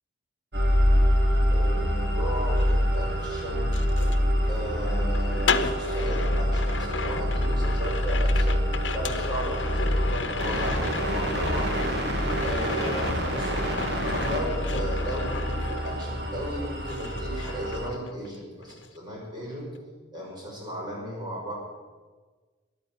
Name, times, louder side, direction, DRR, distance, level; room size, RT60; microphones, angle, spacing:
sound 1, 0.5-17.9, equal, 65° right, 2.4 m, -26 dB
voice 1, 1.5-3.8 4.5-8.6 8.9-11.9 12.4-13.8 14.2-19.7 20.1-21.5, equal, 25° right, -3 dB, 6.1 m, -35 dB
sound 2, 2.4-16.6 16.9-18.4 18.6-19.0, left 5 dB, 80° left, 0.9 m, -35 dB
14.0 x 11.5 x 9.1 m, 1.4 s
head